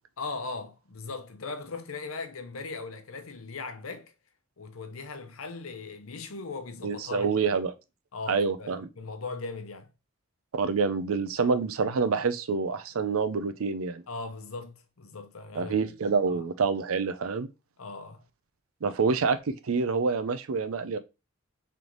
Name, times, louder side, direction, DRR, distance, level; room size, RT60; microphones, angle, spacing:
voice 1, 0.2-4.1 4.6-7.5 8.1-9.9 11.4-11.6 14.1-15.9 16.3-16.5 17.8-18.2, left 3 dB, 80° left, 0.8 m, -39 dB
voice 2, 6.8-7.7 8.3-8.9 10.5-14.0 15.6-17.5 18.8-21.0, right 5 dB, 80° right, 0.5 m, -27 dB
3.8 x 3.4 x 3.0 m
head